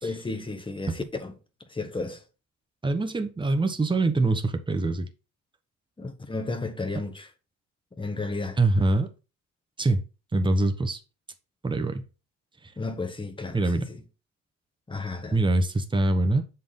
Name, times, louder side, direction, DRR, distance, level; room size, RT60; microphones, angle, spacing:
voice 1, 0.0-1.3 1.7-2.2 6.0-7.3 8.0-8.6 12.8-14.0 14.9-15.4, left 3 dB, 15° left, 1.3 m, -33 dB
voice 2, 2.8-5.1 8.6-9.1 9.8-10.0 10.3-11.0 11.6-12.1 13.5-13.9 15.3-16.4, right 2 dB, 15° right, 1.0 m, -24 dB
7.1 x 4.2 x 3.7 m
cardioid pair, 90°, 30 cm